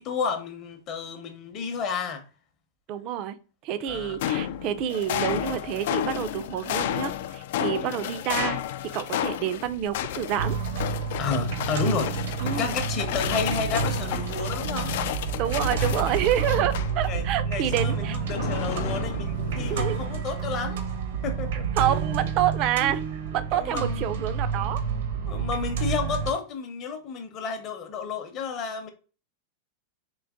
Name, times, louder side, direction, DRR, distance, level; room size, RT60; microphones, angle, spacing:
voice 1, 0.0-2.2 3.9-4.2 7.7-8.0 11.2-14.9 17.1-20.8 21.2-21.7 23.5-24.0 25.3-28.9, left 5 dB, 30° left, 0.7 m, -31 dB
voice 2, 2.9-3.4 3.6-10.6 12.4-12.8 15.4-18.2 19.7-20.0 21.8-24.8, right 10 dB, 35° right, 0.4 m, -28 dB
sound 1, 3.9-17.2 17.6-20.3, left 11 dB, 60° left, 0.3 m, -32 dB
sound 2, 10.4-26.3, right 6 dB, 75° right, 0.9 m, -29 dB
3.9 x 2.9 x 3.5 m
supercardioid pair, 165°, 0 cm